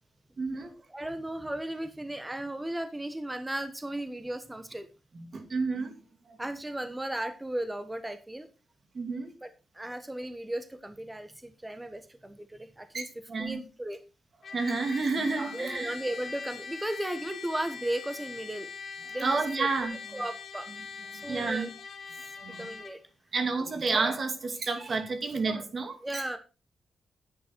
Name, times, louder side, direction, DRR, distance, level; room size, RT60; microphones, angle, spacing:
voice 1, 0.4-0.7 5.1-5.9 6.3-6.4 8.9-9.3 12.9-13.0 13.3-13.6 14.5-15.9 19.2-20.0 21.1-21.7 22.4-22.7 23.3-26.2, right 4 dB, 45° right, 6 dB, 2.5 m, -30 dB
voice 2, 0.9-4.9 6.4-8.5 9.4-9.5 9.7-13.1 13.4-14.0 15.5-18.7 19.1-19.7 20.1-20.7 21.1-21.7 22.6-23.0 26.0-26.4, right 1 dB, 10° right, 9 dB, 1.1 m, -35 dB
Trumpet, 14.4-23.0, left 5 dB, 55° left, 2.3 m, -42 dB
10.5 x 8.4 x 4.5 m, 0.31 s
wide cardioid pair, 130°, 0 cm